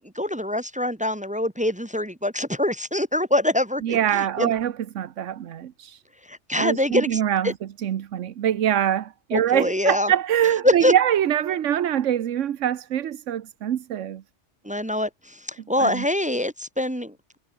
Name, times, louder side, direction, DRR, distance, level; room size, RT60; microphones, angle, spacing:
voice 1, 0.2-4.5 6.3-7.5 9.3-10.1 10.6-10.9 14.6-17.1, left 1 dB, 10° right, 0.7 m, -24 dB
voice 2, 3.8-6.0 6.6-14.2 15.8-16.0, right 10 dB, 90° right, 1.2 m, -24 dB
omnidirectional pair, 1.2 m